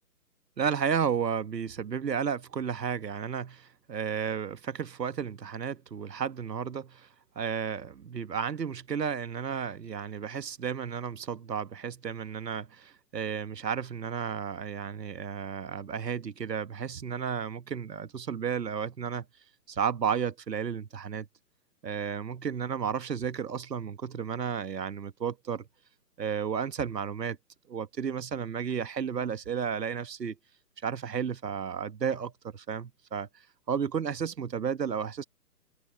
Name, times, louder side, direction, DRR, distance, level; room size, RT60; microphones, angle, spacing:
voice 1, 0.6-7.1 7.3-19.2 19.7-21.3 21.8-25.6 26.2-27.4 27.7-30.3 30.8-33.3 33.7-35.2, right 7 dB, 85° right, 1.4 m, -33 dB
hypercardioid pair, 145°, 48 cm